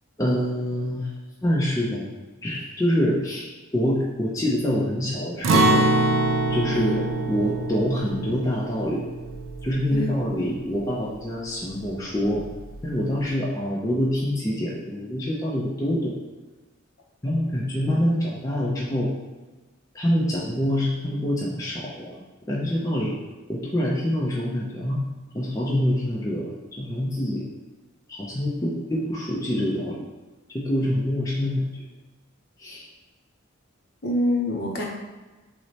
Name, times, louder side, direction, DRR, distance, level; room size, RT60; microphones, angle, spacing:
voice 1, 0.2-1.1 1.4-2.1 2.4-3.5 3.7-5.9 6.5-9.0 9.6-12.4 12.8-16.1 17.2-19.1 19.9-22.2 22.5-23.2 23.5-25.0 25.3-27.5 28.1-30.0 30.5-31.7 32.6-32.8, equal, 15° left, -5 dB, 0.4 m, -26 dB
Acoustic guitar, 5.4-11.3 11.7-11.8 12.3-12.8, right 2 dB, 75° right, 0.4 m, -25 dB
voice 2, 6.7-7.0 9.9-10.1 34.0-34.9, equal, 50° left, -1 dB, 0.7 m, -25 dB
6.1 x 2.1 x 2.8 m, 1.3 s
head